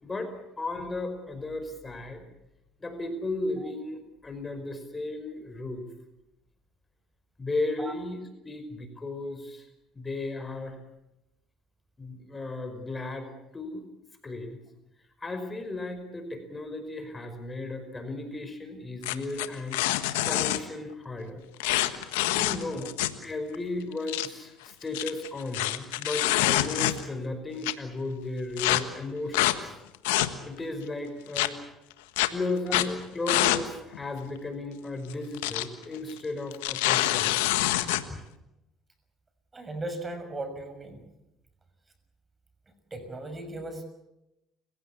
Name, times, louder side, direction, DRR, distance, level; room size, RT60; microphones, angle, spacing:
voice 1, 0.0-2.2 2.8-5.9 7.4-9.7 10.0-10.8 12.0-13.8 14.2-14.6 15.2-19.8 20.2-21.4 22.3-23.0 23.2-29.8 30.5-31.6 32.3-37.4 38.1-38.2, left 2 dB, 25° left, 7 dB, 5.3 m, -35 dB
sound 1, 19.0-20.6 21.6-23.2 23.5-23.6 23.9-24.3 24.8-27.2 27.6-27.7 28.6-28.8 29.3-29.6 29.9-30.6 31.4-31.5 32.2-32.3 32.7-32.9 33.3-33.6 33.9-34.0 35.1-35.6 35.9-36.1 36.5-38.0, left 16 dB, 90° left, 1.4 m, -26 dB
voice 2, 39.5-41.1 42.9-43.8, right 2 dB, 25° right, 9 dB, 6.5 m, -37 dB
30.0 x 16.5 x 8.6 m, 0.91 s
supercardioid pair, 75°, 0 cm